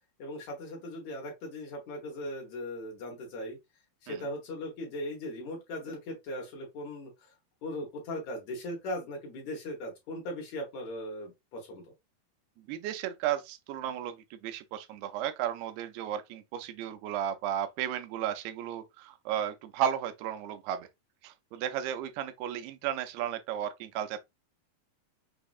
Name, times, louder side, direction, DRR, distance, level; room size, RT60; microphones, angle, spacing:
voice 1, 0.2-3.6 4.0-7.3 7.6-11.9, left 1 dB, 60° left, 2.1 m, -38 dB
voice 2, 12.7-20.9 21.2-24.2, right 10 dB, 85° right, 2.5 m, -34 dB
6.2 x 2.8 x 2.4 m
omnidirectional pair, 4.6 m